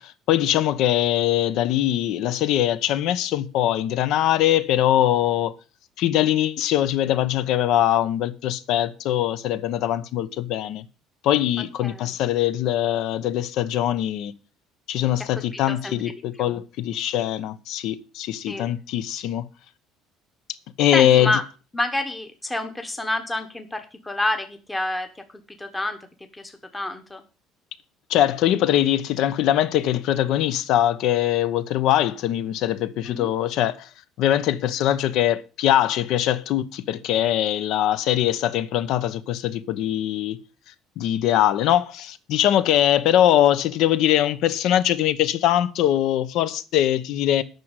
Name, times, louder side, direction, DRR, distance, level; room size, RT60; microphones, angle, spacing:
voice 1, 0.0-5.6 6.0-10.8 11.2-14.3 14.9-19.5 20.8-21.3 28.1-33.9 34.2-40.4 41.0-47.4, left 12 dB, 65° left, 0.9 m, -22 dB
voice 2, 11.6-12.1 15.3-16.0 16.4-16.6 18.5-18.7 20.9-21.4 21.7-26.0 26.3-27.2 33.0-33.3, left 2 dB, 10° left, 1.0 m, -29 dB
9.3 x 6.2 x 8.2 m
cardioid pair, 150°, 0 cm